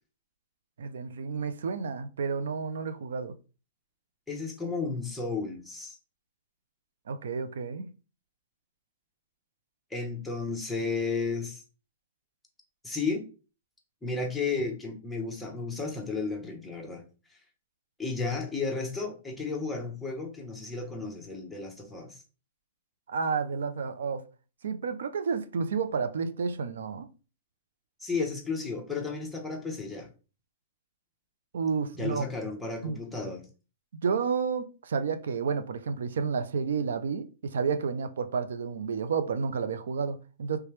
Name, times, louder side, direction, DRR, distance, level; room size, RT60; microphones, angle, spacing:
voice 1, 0.8-3.3 7.1-7.9 23.1-24.2 24.6-27.1 31.5-32.3 32.8-33.0 33.9-40.6, right 5 dB, 90° right, 0.4 m, -31 dB
voice 2, 4.3-6.0 9.9-11.6 12.8-13.2 14.0-17.0 18.0-22.2 28.0-30.1 32.0-33.4, left 4 dB, 5° left, 0.8 m, -33 dB
3.3 x 3.1 x 3.1 m
hypercardioid pair, 155°, 0 cm